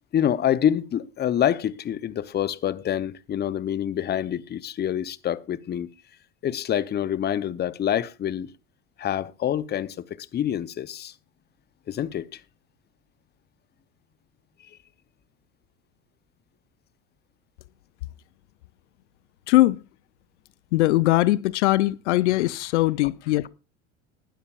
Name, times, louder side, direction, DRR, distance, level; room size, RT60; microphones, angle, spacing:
voice 1, 0.1-5.9 6.4-8.5 9.0-11.1 11.9-12.4, left 10 dB, 25° left, 0.8 m, -26 dB
voice 2, 19.5-19.8 20.7-23.5, left 18 dB, 65° left, 0.6 m, -20 dB
19.5 x 12.5 x 2.5 m
hypercardioid pair, 75°, 37 cm